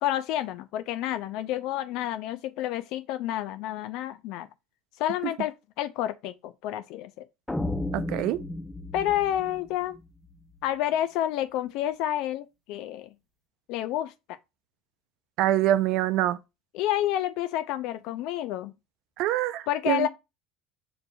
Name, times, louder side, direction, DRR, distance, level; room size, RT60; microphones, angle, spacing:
voice 1, 0.0-4.5 5.0-7.1 8.9-10.0 10.6-13.1 13.7-14.4 16.7-18.7 19.7-20.1, left 12 dB, 65° left, 0.3 m, -29 dB
sound 1, 7.5-10.6, left 2 dB, 10° left, 0.5 m, -34 dB
voice 2, 7.9-8.4 15.4-16.4 19.2-20.1, right 13 dB, 65° right, 0.4 m, -25 dB
6.7 x 2.6 x 2.2 m
hypercardioid pair, 80°, 0 cm